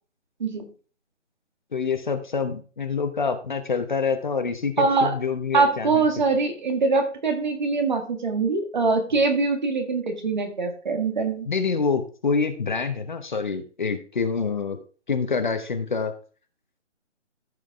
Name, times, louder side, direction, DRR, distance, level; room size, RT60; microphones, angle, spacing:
voice 1, 1.7-6.0 11.5-14.8 15.1-16.1, left 5 dB, 40° left, 7 dB, 1.0 m, -26 dB
voice 2, 4.8-5.2 5.5-11.5, right 4 dB, 40° right, 5 dB, 1.7 m, -23 dB
14.5 x 5.1 x 3.6 m, 0.38 s
figure-of-eight pair, 165°, 37 cm